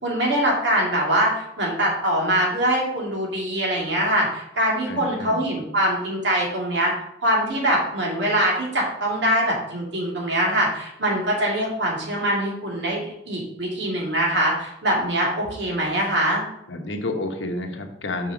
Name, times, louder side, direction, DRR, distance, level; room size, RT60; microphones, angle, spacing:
voice 1, 0.0-6.9 7.2-16.4, right 1 dB, 70° right, -2 dB, 2.3 m, -23 dB
voice 2, 4.9-5.4 16.7-18.3, left 2 dB, 90° left, 4 dB, 1.1 m, -30 dB
5.5 x 4.9 x 6.2 m, 0.80 s
head